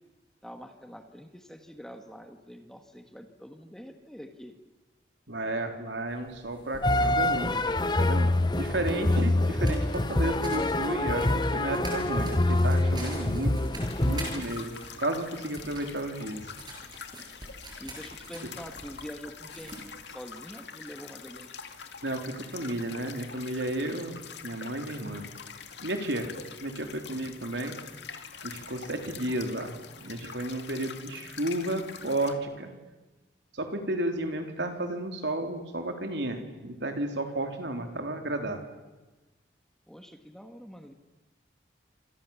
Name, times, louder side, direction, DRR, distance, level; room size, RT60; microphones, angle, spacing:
voice 1, 0.4-4.5 17.8-19.8 20.1-21.5 39.9-40.9, equal, 5° left, 6 dB, 1.8 m, -45 dB
voice 2, 5.3-7.6 7.9-13.5 14.0-16.5 22.0-24.2 24.4-25.3 25.8-26.3 26.6-27.8 28.4-32.7 33.5-38.6, right 1 dB, 75° right, 5 dB, 3.6 m, -32 dB
sound 1, 6.1-19.8, right 1 dB, 25° right, 7.0 m, -46 dB
sound 2, 6.8-14.4, left 1 dB, 25° left, 0.9 m, -26 dB
sound 3, 13.8-32.3, left 6 dB, 70° left, 2.3 m, -45 dB
29.0 x 27.0 x 7.2 m, 1.2 s
head